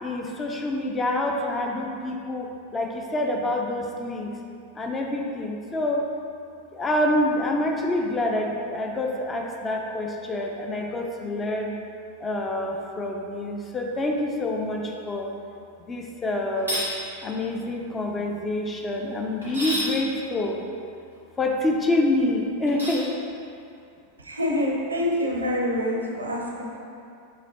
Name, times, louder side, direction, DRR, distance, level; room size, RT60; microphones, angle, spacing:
voice 1, 0.0-4.3 4.8-6.0 6.7-11.7 12.2-15.3 15.9-16.8 17.2-20.6 21.4-23.1, left 1 dB, 15° left, 1 dB, 0.4 m, -27 dB
sound 1, 16.6-16.9 19.4-19.9 22.7-23.0, equal, 90° left, 1.4 m, -29 dB
voice 2, 24.2-26.8, left 1 dB, 75° right, -1 dB, 0.6 m, -26 dB
4.8 x 3.5 x 2.8 m, 2.5 s
figure-of-eight pair, 90°, 0 cm